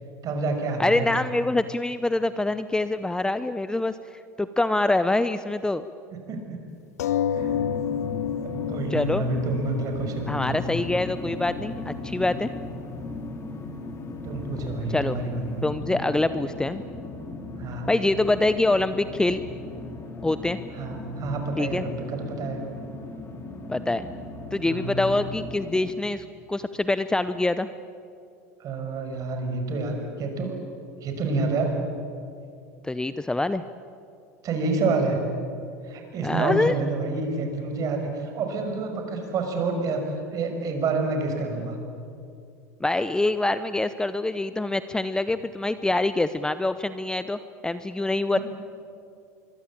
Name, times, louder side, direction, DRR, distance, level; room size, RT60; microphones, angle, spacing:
voice 1, 0.2-1.1 6.1-6.6 7.3-7.5 8.4-10.6 14.2-15.6 17.6-17.9 20.7-22.6 24.7-25.0 28.6-30.6 31.0-31.8 34.4-35.3 35.8-40.0 40.3-41.8 48.3-48.4, right 3 dB, 45° right, 4 dB, 5.9 m, -28 dB
voice 2, 0.8-4.0 4.4-5.8 8.9-9.2 10.3-12.5 14.9-15.2 15.6-16.8 17.9-19.4 20.2-20.6 21.6-21.8 23.7-24.1 24.5-27.7 32.8-33.6 36.2-36.7 42.8-48.4, left 2 dB, 10° left, 13 dB, 0.8 m, -25 dB
sound 1, 7.0-12.0 12.7-12.8 13.1-13.2, left 9 dB, 80° left, 0.5 m, -30 dB
sound 2, 7.3-25.9, left 3 dB, 30° left, 3.3 m, -37 dB
25.0 x 22.5 x 8.8 m, 2.5 s
hypercardioid pair, 85°, 8 cm